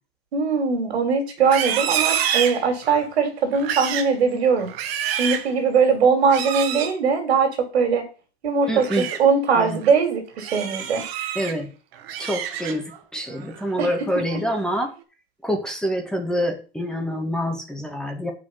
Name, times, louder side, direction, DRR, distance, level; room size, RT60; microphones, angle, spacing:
voice 1, 0.3-4.7 5.1-8.0 8.4-11.0 13.8-13.9, right 5 dB, 85° right, 4 dB, 3.5 m, -21 dB
Livestock farm animals working animals, 1.4-3.1 3.5-4.1 4.6-5.5 6.3-6.9 8.6-9.2 9.7-9.9 10.4-11.5 11.9-13.0 13.4-13.7 14.1-14.5, right 9 dB, 70° right, 1.7 m, -28 dB
voice 2, 8.7-9.1 9.5-9.8 11.4-11.7 12.2-14.9 15.4-18.3, equal, ahead, 3 dB, 2.2 m, -26 dB
7.5 x 5.7 x 6.8 m, 0.34 s
hypercardioid pair, 115°, 31 cm